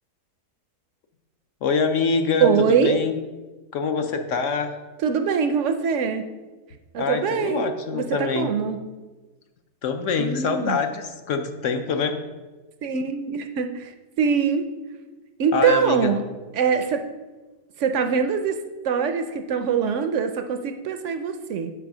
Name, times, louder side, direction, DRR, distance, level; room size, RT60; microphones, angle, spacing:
voice 1, 1.6-3.2 3.7-4.8 7.0-8.5 9.8-12.2 15.5-16.1, left 5 dB, 60° left, 7 dB, 0.9 m, -25 dB
voice 2, 2.4-3.0 5.0-6.2 6.9-8.8 10.2-10.8 12.8-13.9 14.2-14.7 15.4-16.2 16.5-17.0 17.8-21.7, right 6 dB, 65° right, 8 dB, 0.7 m, -23 dB
8.1 x 5.0 x 6.0 m, 1.2 s
omnidirectional pair, 1.7 m